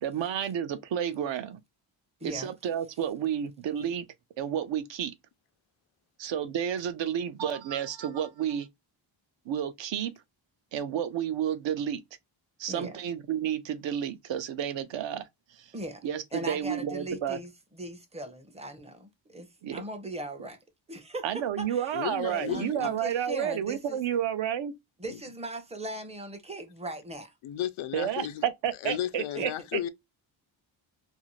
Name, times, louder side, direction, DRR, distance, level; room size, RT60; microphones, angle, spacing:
voice 1, 0.0-1.6 2.2-4.0 4.4-5.1 6.2-8.7 9.5-10.1 10.7-12.0 12.6-15.3 15.6-15.7 16.0-17.4 19.6-19.8 21.2-24.7 27.9-29.8, right 9 dB, 70° right, 0.6 m, -31 dB
voice 2, 2.2-2.5 12.7-13.0 15.7-20.6 20.9-22.0 22.3-24.0 25.0-27.3 29.3-29.5, right 1 dB, 15° right, 0.5 m, -39 dB
voice 3, 21.9-22.9 25.1-25.2 27.4-28.4 28.8-29.9, left 12 dB, 90° left, 0.5 m, -34 dB
2.6 x 2.5 x 2.9 m
wide cardioid pair, 145°, 47 cm